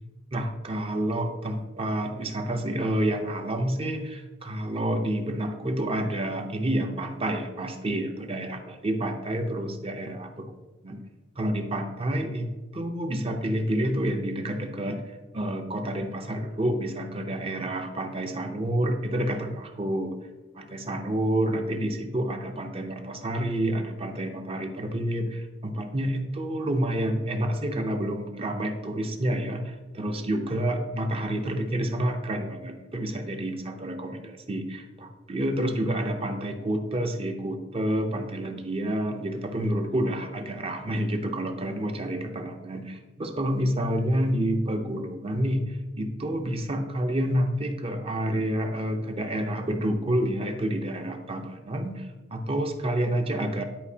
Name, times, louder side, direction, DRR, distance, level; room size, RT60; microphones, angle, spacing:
voice 1, 0.3-10.5 10.8-11.0 11.4-20.1 20.5-53.6, right 1 dB, 30° right, 5 dB, 0.7 m, -29 dB
10.5 x 4.9 x 2.8 m, 1.2 s
head